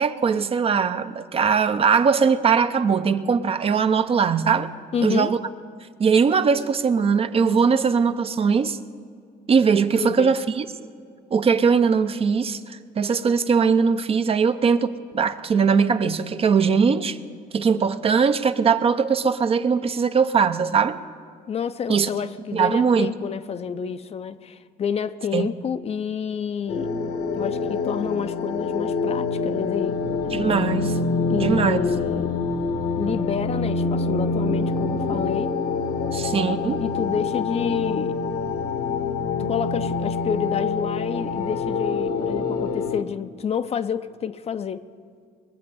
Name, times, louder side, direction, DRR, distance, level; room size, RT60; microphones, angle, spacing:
voice 1, 0.0-4.7 5.0-5.4 6.0-8.8 9.5-10.7 11.3-17.2 17.5-21.0 21.9-22.1 22.5-23.1 25.3-25.5 30.3-30.9 31.4-31.8 36.1-36.8, right 6 dB, 35° right, 0.6 m, -20 dB
voice 2, 4.9-5.3 10.0-10.3 21.5-26.9 27.3-30.0 31.1-32.4 33.0-35.5 36.7-38.2 39.4-44.8, left 7 dB, 40° left, 0.5 m, -29 dB
sound 1, 26.7-43.0, left 4 dB, 65° left, 1.1 m, -26 dB
21.5 x 7.5 x 7.0 m
cardioid pair, 110°, 17 cm